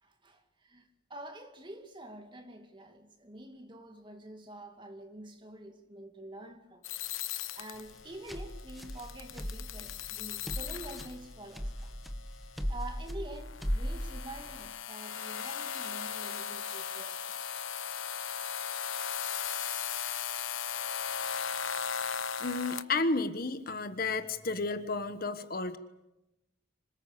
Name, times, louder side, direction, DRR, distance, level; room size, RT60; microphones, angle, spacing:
voice 1, 0.0-6.8 7.6-11.9 12.7-17.2 19.5-19.6 19.9-20.0, right 1 dB, 25° right, 2.3 m, -47 dB
sound 1, 6.8-22.8, left 8 dB, 85° left, 1.1 m, -38 dB
sound 2, 7.7-14.7, equal, ahead, 1.4 m, -38 dB
voice 2, 22.4-25.8, left 3 dB, 45° left, 1.3 m, -32 dB
26.5 x 19.0 x 8.6 m
head